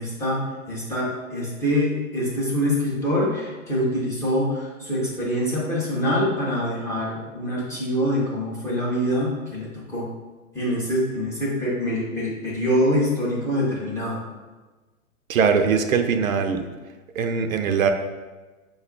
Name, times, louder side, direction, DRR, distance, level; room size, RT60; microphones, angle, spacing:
voice 1, 0.0-10.1 10.5-14.2, equal, 5° left, -8 dB, 0.4 m, -25 dB
voice 2, 15.3-16.6 17.2-17.9, right 6 dB, 70° right, 7 dB, 0.6 m, -21 dB
5.1 x 2.3 x 3.7 m, 1.2 s
hypercardioid pair, 115°, 42 cm